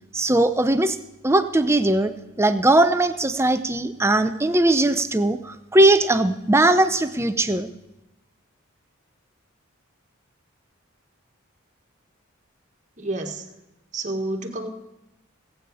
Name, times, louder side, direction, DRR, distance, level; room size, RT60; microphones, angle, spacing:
voice 1, 0.1-1.0 1.2-2.1 2.4-7.7, right 1 dB, 15° right, 10 dB, 0.6 m, -19 dB
voice 2, 13.0-13.4 13.9-14.7, right 2 dB, 35° right, 2 dB, 1.6 m, -29 dB
19.0 x 8.6 x 4.9 m, 0.95 s
head